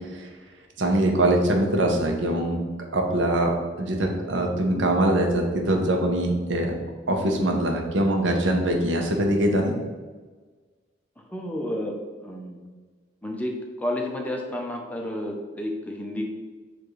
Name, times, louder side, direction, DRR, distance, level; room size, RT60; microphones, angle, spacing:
voice 1, 0.8-2.6 2.9-3.5 3.8-6.7 7.1-9.7, right 1 dB, 80° right, 2 dB, 0.7 m, -23 dB
voice 2, 11.3-12.6 13.2-16.2, left 1 dB, 10° left, 1 dB, 0.5 m, -31 dB
6.8 x 2.5 x 3.1 m, 1.4 s
head